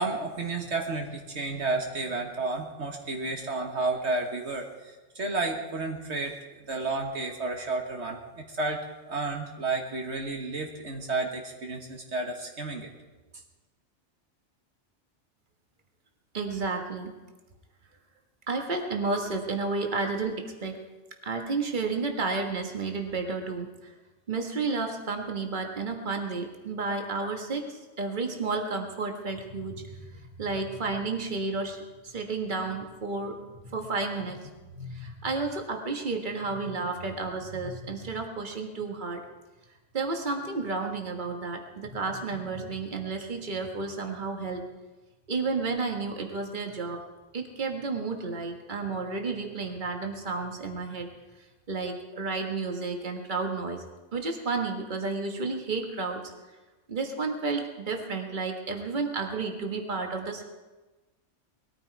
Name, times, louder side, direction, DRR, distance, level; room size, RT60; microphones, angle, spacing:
voice 1, 0.0-6.3 6.7-12.9, right 3 dB, 65° right, 2 dB, 1.7 m, -31 dB
voice 2, 16.3-17.1 18.5-20.8 21.2-23.9 24.3-33.4 33.6-39.2 39.9-44.7 45.3-47.0 47.3-51.1 51.7-53.8 54.1-56.3 56.9-60.4, right 3 dB, 40° right, 3 dB, 1.7 m, -32 dB
20.5 x 13.5 x 4.7 m, 1.2 s
omnidirectional pair, 1.2 m